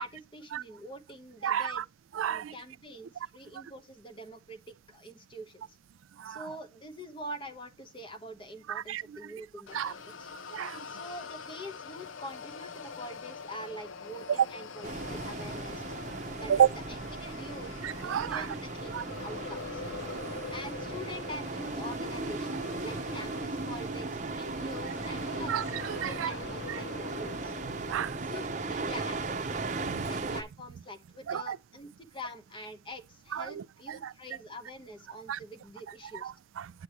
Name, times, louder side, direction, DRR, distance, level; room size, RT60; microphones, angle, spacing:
voice 1, 0.0-1.8 2.2-5.8 6.2-10.3 10.9-15.8 16.4-17.7 18.0-19.8 20.5-25.5 26.0-27.6 28.2-29.6 30.1-36.3, equal, 25° left, 1.1 m, -45 dB
voice 2, 1.4-1.8 2.1-2.5 3.5-3.6 6.2-6.4 8.7-9.3 9.7-9.9 10.5-10.8 14.3-14.4 16.5-16.7 17.8-18.5 18.9-19.0 25.5-26.3 26.7-26.8 27.9-28.1 29.9-30.1 31.3-31.6 33.3-34.1 35.3-35.4 36.2-36.7, right 9 dB, 90° right, 0.4 m, -31 dB
sound 1, 9.7-27.9, left 4 dB, 85° left, 0.7 m, -44 dB
sound 2, 14.8-30.4, right 3 dB, 40° right, 0.8 m, -37 dB
8.8 x 8.2 x 2.9 m
head